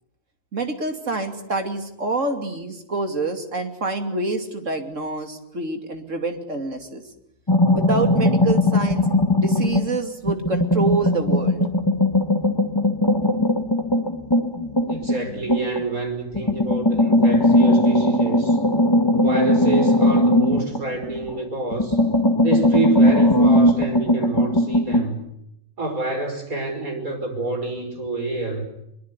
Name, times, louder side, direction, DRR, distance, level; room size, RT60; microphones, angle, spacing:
voice 1, 0.5-7.0 7.7-9.0 9.3-11.6, right 3 dB, 65° right, 6 dB, 3.1 m, -26 dB
sound 1, 7.5-9.9 10.3-15.9 16.3-21.4 21.7-25.1, left 1 dB, 20° left, 1.9 m, -19 dB
voice 2, 14.9-18.6 19.1-22.0 22.4-25.2 25.8-28.7, right 2 dB, 90° right, 5 dB, 5.9 m, -28 dB
23.0 x 23.0 x 9.8 m, 0.79 s
omnidirectional pair, 1.4 m